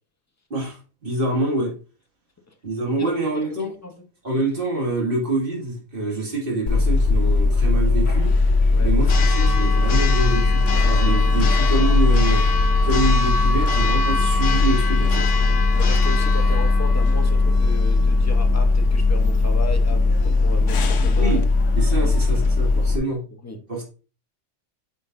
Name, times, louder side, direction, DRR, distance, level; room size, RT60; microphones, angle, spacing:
voice 1, 0.5-1.7 2.6-3.7 4.2-8.3 8.8-12.4 12.8-15.2 21.2-21.4 21.8-23.2 23.7-23.8, right 2 dB, 45° right, 2.3 m, -26 dB
voice 2, 2.9-4.0 8.7-9.0 15.7-21.4 22.0-22.4 23.4-23.6, left 2 dB, 15° left, 0.7 m, -35 dB
Church bell, 6.7-23.0, left 3 dB, 75° left, 1.1 m, -18 dB
8.4 x 5.4 x 2.6 m
omnidirectional pair, 1.3 m